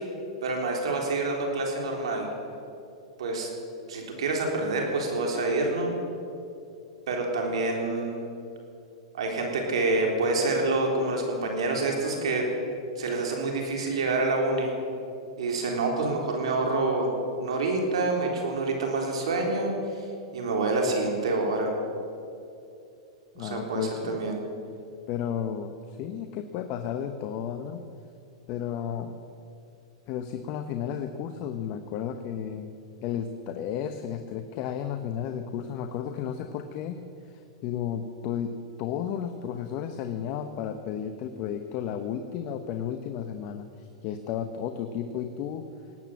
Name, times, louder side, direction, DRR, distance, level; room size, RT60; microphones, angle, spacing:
voice 1, 0.4-2.3 3.2-3.5 3.9-5.9 7.1-8.2 9.1-12.5 13.0-14.7 15.4-20.0 20.3-21.7 23.4-24.4, right 2 dB, 80° right, 1 dB, 3.7 m, -27 dB
voice 2, 23.3-24.2 25.1-27.8 28.5-29.2 30.1-32.7 33.0-37.0 37.2-38.5 38.8-45.7, left 9 dB, 45° left, 8 dB, 0.9 m, -33 dB
18.0 x 9.1 x 7.5 m, 2.6 s
hypercardioid pair, 125°, 3 cm